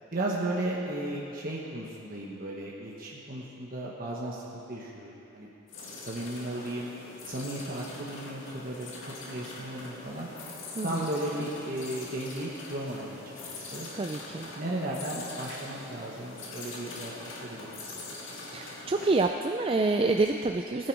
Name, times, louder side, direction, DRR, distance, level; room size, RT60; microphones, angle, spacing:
voice 1, 0.1-5.5 6.0-6.9 7.2-10.3 10.8-13.9 14.5-18.0, right 1 dB, 40° right, -3 dB, 1.2 m, -35 dB
sound 1, 5.7-19.3, left 2 dB, 65° left, 2.1 m, -43 dB
voice 2, 10.8-11.1 13.9-14.5 18.5-20.9, right 3 dB, 25° right, 4 dB, 0.3 m, -27 dB
17.5 x 9.8 x 4.7 m, 2.9 s
head